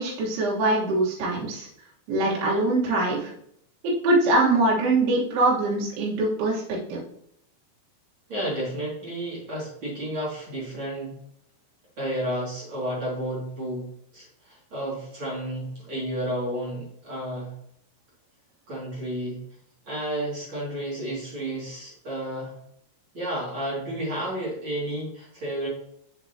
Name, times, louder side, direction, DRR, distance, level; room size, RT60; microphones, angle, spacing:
voice 1, 0.0-1.7 2.1-3.3 3.8-7.0, right 2 dB, 70° right, -5 dB, 3.4 m, -23 dB
voice 2, 8.3-11.2 12.0-17.5 18.7-19.4 19.8-22.5 23.1-25.7, right 1 dB, 35° right, -5 dB, 2.4 m, -31 dB
6.9 x 6.7 x 2.8 m, 0.70 s
omnidirectional pair, 5.0 m